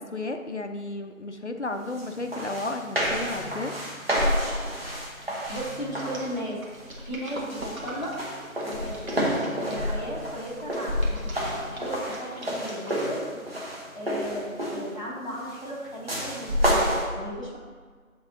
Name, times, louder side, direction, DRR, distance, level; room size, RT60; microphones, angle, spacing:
voice 1, 0.0-3.7, left 2 dB, 55° left, 6 dB, 0.5 m, -33 dB
sound 1, 2.0-2.1 2.3-6.4 6.8-7.2 7.5-15.0 16.1-17.0, equal, 45° right, 1.1 m, -29 dB
sound 2, 3.6-3.9 4.2-10.1 10.6-13.3 13.7-13.8, right 1 dB, 75° right, 1.6 m, -42 dB
voice 2, 5.5-6.6 7.0-8.1 8.6-13.4 13.9-17.6, equal, 35° left, -6 dB, 1.2 m, -36 dB
7.7 x 3.6 x 3.9 m, 1.5 s
figure-of-eight pair, 170°, 42 cm